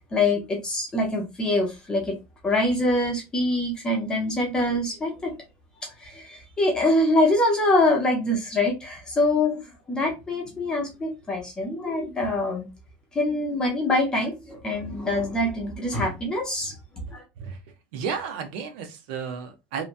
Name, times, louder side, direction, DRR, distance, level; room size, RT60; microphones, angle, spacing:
voice 1, 0.0-2.2 2.4-5.3 5.8-9.6 9.9-12.7 13.1-16.7 17.1-17.2, left 1 dB, 15° left, 0.6 m, -24 dB
voice 2, 17.9-19.8, right 6 dB, 70° right, 0.7 m, -32 dB
2.9 x 2.1 x 2.5 m
cardioid pair, 175°, 6 cm